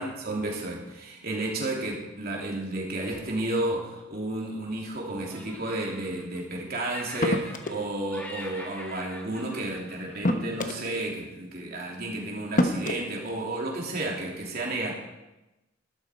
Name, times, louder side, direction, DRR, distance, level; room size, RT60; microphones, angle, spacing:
voice 1, 0.0-14.9, right 2 dB, 50° right, -2 dB, 3.1 m, -32 dB
Laughter, 3.7-4.9 5.2-6.6 6.8-7.9 8.1-10.7, equal, 10° left, 2.0 m, -44 dB
sound 1, 7.2-7.9 9.3-9.4 10.2-10.9 12.0-12.1 12.6-13.0, left 1 dB, 45° left, 1.0 m, -26 dB
13.0 x 12.0 x 4.5 m, 1.0 s
head